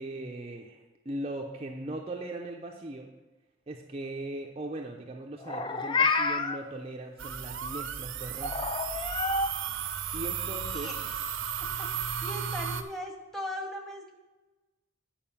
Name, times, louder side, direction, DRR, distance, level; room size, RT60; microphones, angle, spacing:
voice 1, 0.0-3.1 3.7-8.7 10.1-10.9, right 1 dB, 30° right, 1 dB, 0.6 m, -39 dB
Meow, 5.4-6.6 8.4-9.5, left 3 dB, 20° left, 0.4 m, -28 dB
sound 1, 7.2-12.8, right 7 dB, 70° right, 0.7 m, -34 dB
voice 2, 10.7-11.2 11.9-14.1, equal, ahead, 1 dB, 1.1 m, -39 dB
8.8 x 4.9 x 7.2 m, 1.1 s
head